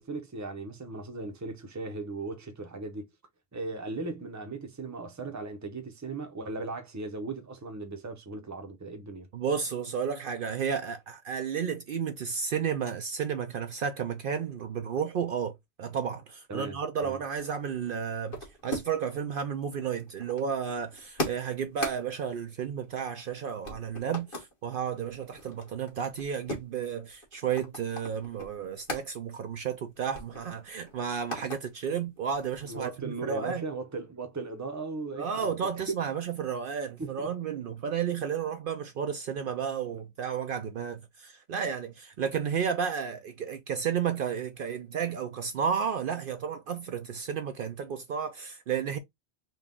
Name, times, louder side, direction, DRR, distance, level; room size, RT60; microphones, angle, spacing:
voice 1, 0.0-3.1 3.5-9.3 16.5-17.2 32.6-35.5 37.0-37.3, right 3 dB, 20° right, 0.6 m, -37 dB
voice 2, 9.3-33.6 35.2-49.0, right 7 dB, 60° right, 0.7 m, -32 dB
sound 1, 17.3-19.2 19.4-23.3 23.6-24.5 25.0-29.1 29.5-29.6 29.9-31.6 32.0-32.9, left 1 dB, 55° left, 1.6 m, -40 dB
4.0 x 2.3 x 3.6 m
omnidirectional pair, 1.1 m